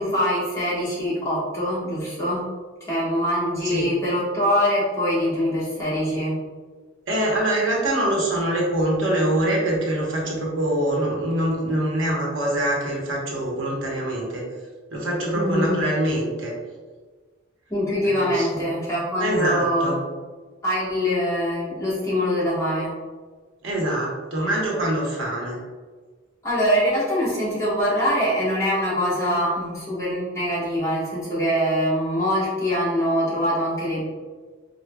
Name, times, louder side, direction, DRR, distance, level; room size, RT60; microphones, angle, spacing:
voice 1, 0.0-2.5 2.9-6.4 15.3-15.8 17.7-20.0 20.6-22.9 26.4-34.0, equal, 15° left, -9 dB, 1.2 m, -23 dB
voice 2, 7.1-14.4 14.9-16.5 18.0-18.7 19.2-20.0 23.6-25.6, right 1 dB, 85° right, -3 dB, 0.9 m, -24 dB
4.6 x 2.1 x 2.3 m, 1.4 s
head